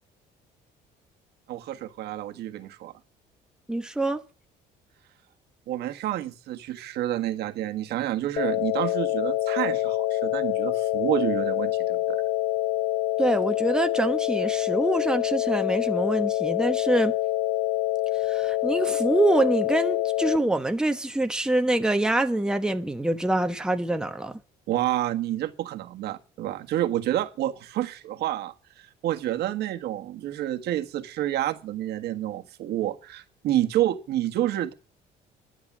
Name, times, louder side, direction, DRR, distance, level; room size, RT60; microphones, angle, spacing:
voice 1, 1.5-2.9 5.7-12.2 24.7-34.7, right 13 dB, 75° right, 1.6 m, -29 dB
voice 2, 3.7-4.2 13.2-17.1 18.3-24.3, right 2 dB, 5° right, 1.1 m, -25 dB
sound 1, 8.4-20.4, left 16 dB, 90° left, 0.8 m, -26 dB
11.5 x 9.1 x 7.3 m
cardioid pair, 110°, 17 cm